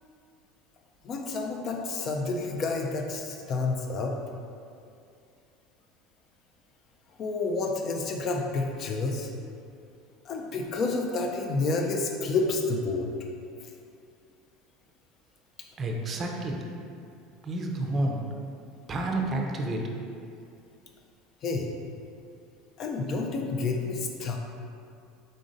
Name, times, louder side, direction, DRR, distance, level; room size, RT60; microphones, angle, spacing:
voice 1, 1.0-4.1 7.2-9.3 10.2-13.1 13.6-13.7 21.4-21.7 22.8-24.4, left 3 dB, 45° left, 2 dB, 0.5 m, -29 dB
voice 2, 15.8-16.6 17.4-18.2 18.9-20.0, right 1 dB, 30° right, 1 dB, 0.5 m, -30 dB
3.8 x 3.8 x 2.6 m, 2.5 s
supercardioid pair, 100°, 0 cm